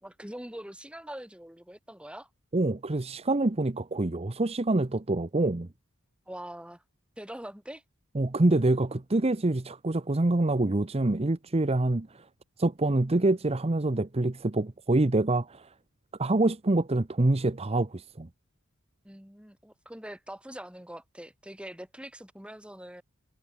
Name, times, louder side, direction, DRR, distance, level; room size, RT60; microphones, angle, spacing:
voice 1, 0.0-2.3 6.3-6.8 7.2-7.8 19.0-23.0, right 1 dB, 5° right, 3.1 m, -43 dB
voice 2, 2.5-5.7 8.1-12.2 12.6-15.7 16.2-18.3, right 2 dB, 30° right, 0.8 m, -26 dB
head